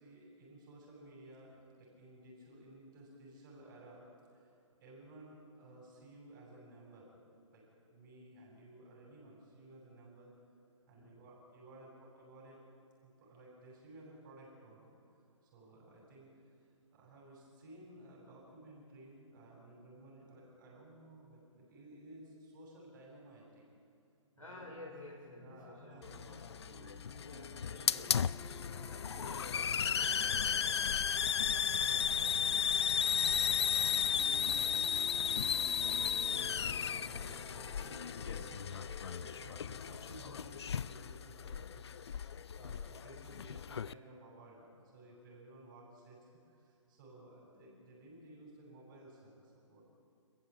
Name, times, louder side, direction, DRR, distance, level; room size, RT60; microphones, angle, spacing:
voice 1, 0.0-4.0 4.3-4.5 4.8-7.1 7.5-10.3 10.9-12.6 13.0-15.0 15.4-16.3 16.9-23.7 24.3-24.7 25.4-26.2 27.2-30.3 30.6-31.1 31.7-35.3 35.6-49.8, right 2 dB, 35° right, -4 dB, 7.6 m, -56 dB
voice 2, 10.9-11.2 24.4-28.2 29.0-30.9, left 1 dB, 85° left, -1 dB, 3.5 m, -53 dB
sound 1, 24.6-39.1, left 3 dB, 20° left, 4.1 m, -53 dB
Hiss, 26.0-43.9, left 7 dB, 55° left, 0.5 m, -34 dB
26.5 x 15.0 x 8.8 m, 2.5 s
figure-of-eight pair, 130°, 17 cm